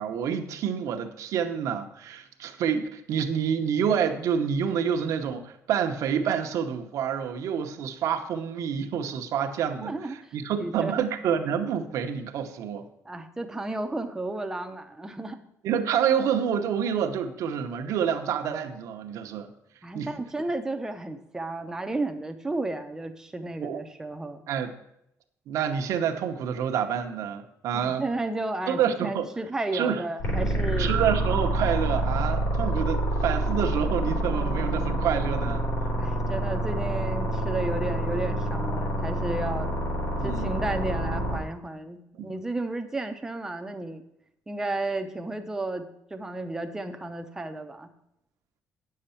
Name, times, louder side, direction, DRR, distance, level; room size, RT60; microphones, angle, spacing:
voice 1, 0.0-12.9 15.6-19.5 19.9-20.1 23.6-23.8 24.5-24.7 25.5-28.0 28.7-29.2 29.7-30.0 30.8-35.7 40.2-40.6 42.2-42.3, right 8 dB, 70° right, 5 dB, 0.9 m, -28 dB
voice 2, 9.8-10.2 10.6-11.0 13.0-15.4 19.8-24.4 27.7-30.9 35.9-39.7 40.2-44.0 44.5-47.9, right 2 dB, 10° right, 6 dB, 0.6 m, -33 dB
sound 1, 30.2-41.4, right 1 dB, 65° left, 3.4 m, -27 dB
9.3 x 6.7 x 5.7 m, 0.80 s
cardioid pair, 180°, 6 cm